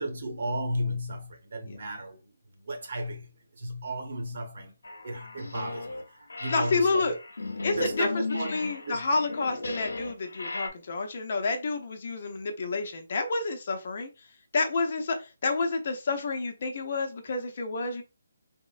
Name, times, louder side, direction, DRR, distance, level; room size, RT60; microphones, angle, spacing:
voice 1, 0.0-4.8 5.0-7.2 7.7-9.0, right 1 dB, 55° right, 0.9 m, -34 dB
sound 1, 4.8-6.0 6.3-10.7, left 3 dB, 90° left, 0.6 m, -36 dB
voice 2, 6.5-7.1 7.6-8.1 8.5-14.1 14.5-18.0, left 3 dB, 45° left, 0.6 m, -29 dB
3.5 x 2.0 x 2.4 m
hypercardioid pair, 165°, 0 cm